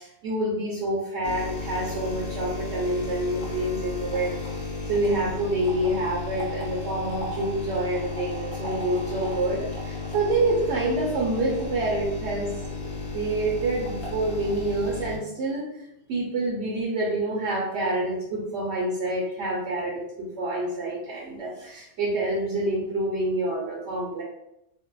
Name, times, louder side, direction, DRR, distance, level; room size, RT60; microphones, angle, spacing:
voice 1, 0.0-4.3 4.9-15.7 16.1-24.2, right 1 dB, 65° right, -4 dB, 0.9 m, -27 dB
sound 1, 1.2-15.2, left 2 dB, 55° left, 0.9 m, -34 dB
2.6 x 2.1 x 2.3 m, 0.82 s
omnidirectional pair, 1.3 m